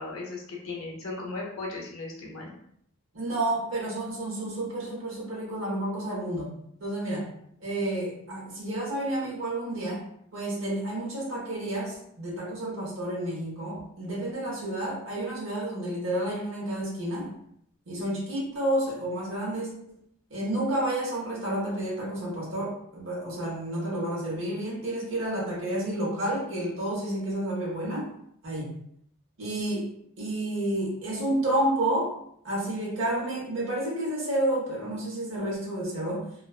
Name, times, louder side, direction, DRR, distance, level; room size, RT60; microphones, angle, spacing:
voice 1, 0.0-2.5, left 3 dB, 80° left, -1 dB, 0.7 m, -36 dB
voice 2, 3.1-6.5 6.8-7.3 7.6-10.1 10.3-17.3 17.9-19.7 20.3-28.1 28.4-28.8 29.4-29.9 30.2-32.1 32.4-36.3, right 1 dB, 60° right, -4 dB, 0.9 m, -30 dB
2.4 x 2.1 x 2.4 m, 0.70 s
head